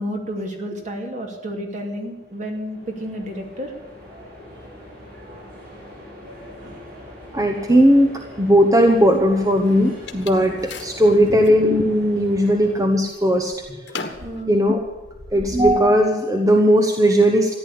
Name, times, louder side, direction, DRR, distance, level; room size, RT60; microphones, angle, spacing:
voice 1, 0.0-3.7 6.6-6.8 13.9-14.5, equal, 45° right, 2 dB, 2.6 m, -31 dB
sound 1, 1.9-12.7, left 1 dB, 60° right, 5.4 m, -42 dB
voice 2, 7.3-13.5 13.8-13.9 14.5-14.9 15.3-17.5, equal, 20° right, 3 dB, 1.0 m, -17 dB
sound 2, 8.9-11.6 12.1-12.7 13.0-15.8, left 3 dB, 75° left, 1.6 m, -37 dB
14.5 x 10.5 x 8.6 m, 1.2 s
head